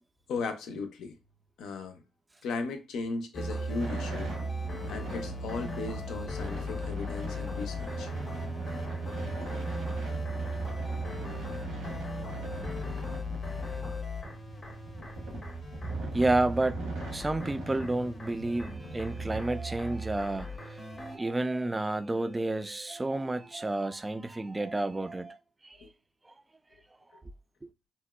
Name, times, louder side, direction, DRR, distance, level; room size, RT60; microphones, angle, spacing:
voice 1, 0.3-1.2 1.6-2.0 2.4-4.4 4.9-8.1 25.8-25.9 27.1-27.2, left 4 dB, 70° left, 0.4 m, -36 dB
sound 1, 3.3-21.2, right 1 dB, 35° left, 0.6 m, -37 dB
sound 2, 3.8-19.4, right 1 dB, 80° right, 0.9 m, -41 dB
voice 2, 16.1-16.8 17.1-25.9 26.3-26.4 27.6-27.7, right 2 dB, 20° right, 0.3 m, -31 dB
2.7 x 2.0 x 2.3 m
hypercardioid pair, 45°, 0 cm